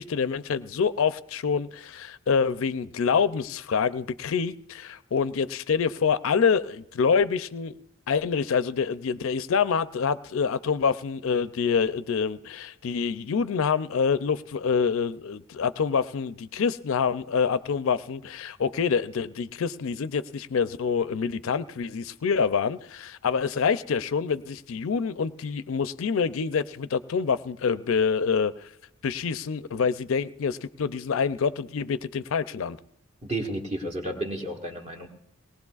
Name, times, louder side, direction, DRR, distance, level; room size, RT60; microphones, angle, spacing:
voice 1, 0.0-7.7 8.1-28.7 29.0-32.8, left 6 dB, 70° left, 14 dB, 0.4 m, -26 dB
voice 2, 33.2-35.1, right 1 dB, 30° right, 3 dB, 1.4 m, -32 dB
19.0 x 19.0 x 2.4 m, 0.79 s
head